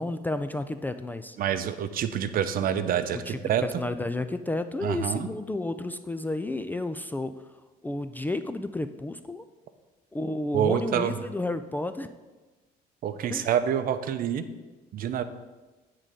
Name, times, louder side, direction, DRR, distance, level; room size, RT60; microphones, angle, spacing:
voice 1, 0.0-1.4 3.3-7.3 7.8-9.5 10.1-12.1 13.3-13.5, left 2 dB, 10° left, 10 dB, 0.3 m, -31 dB
voice 2, 1.4-3.6 4.8-5.3 10.5-11.2 13.0-14.5 14.9-15.2, right 9 dB, 60° right, 11 dB, 0.6 m, -27 dB
9.0 x 3.7 x 6.6 m, 1.2 s
cardioid pair, 110°, 17 cm